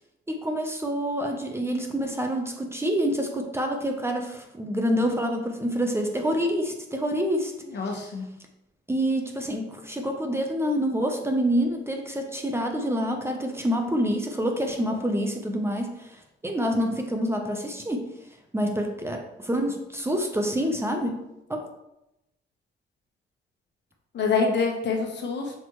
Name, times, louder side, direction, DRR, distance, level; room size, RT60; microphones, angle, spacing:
voice 1, 0.3-7.5 7.9-8.0 8.9-18.1 18.5-21.2 21.5-21.7, equal, 10° right, 3 dB, 0.8 m, -27 dB
voice 2, 7.6-8.3 24.1-25.5, left 4 dB, 60° left, 2 dB, 1.3 m, -26 dB
7.3 x 4.4 x 3.2 m, 0.89 s
cardioid pair, 90°, 20 cm